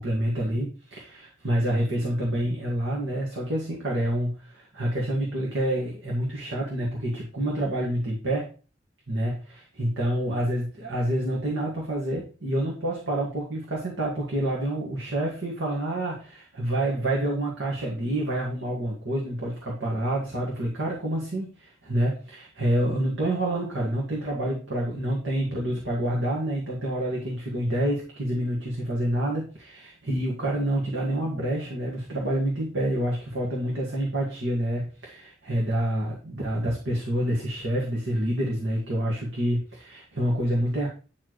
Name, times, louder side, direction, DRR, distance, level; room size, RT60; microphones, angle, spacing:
voice 1, 0.0-8.5 9.1-40.9, right 1 dB, 80° right, -3 dB, 2.0 m, -28 dB
9.8 x 4.6 x 3.2 m, 0.37 s
head